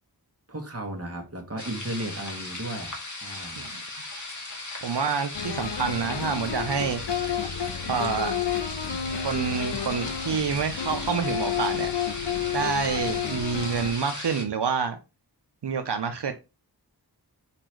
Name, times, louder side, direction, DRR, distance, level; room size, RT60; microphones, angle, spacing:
voice 1, 0.5-3.7, right 1 dB, 35° right, 1.8 m, -35 dB
sound 1, 1.6-14.4, left 2 dB, 45° left, 1.8 m, -37 dB
voice 2, 4.8-7.0 7.9-8.3 9.2-11.9 12.5-15.0 15.6-16.3, right 6 dB, 80° right, 0.7 m, -27 dB
sound 2, 5.3-13.9, left 8 dB, 85° left, 0.7 m, -31 dB
5.0 x 4.4 x 4.5 m
wide cardioid pair, 45°, 41 cm